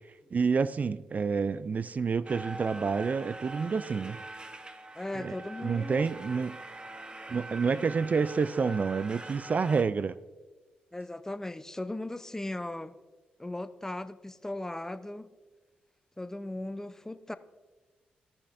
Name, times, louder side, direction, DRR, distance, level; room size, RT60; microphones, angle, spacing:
voice 1, 0.3-4.2 5.1-5.3 5.6-6.6 7.3-10.2, right 5 dB, 45° right, 16 dB, 0.3 m, -28 dB
sound 1, 2.3-9.8, right 2 dB, 25° right, 0.8 m, -44 dB
voice 2, 4.9-6.1 10.9-12.9 13.4-15.3 16.2-17.3, left 1 dB, 15° left, 13 dB, 0.6 m, -37 dB
14.5 x 6.7 x 2.5 m, 1.3 s
hypercardioid pair, 45°, 4 cm